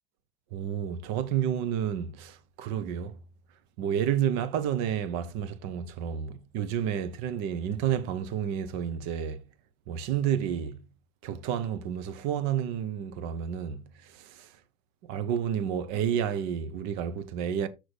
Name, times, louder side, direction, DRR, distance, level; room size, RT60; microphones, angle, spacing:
voice 1, 0.5-3.2 3.8-9.4 9.9-10.8 11.2-14.5 15.0-17.7, right 9 dB, 55° right, 1.3 m, -30 dB
6.6 x 6.3 x 4.0 m
hypercardioid pair, 80°, 32 cm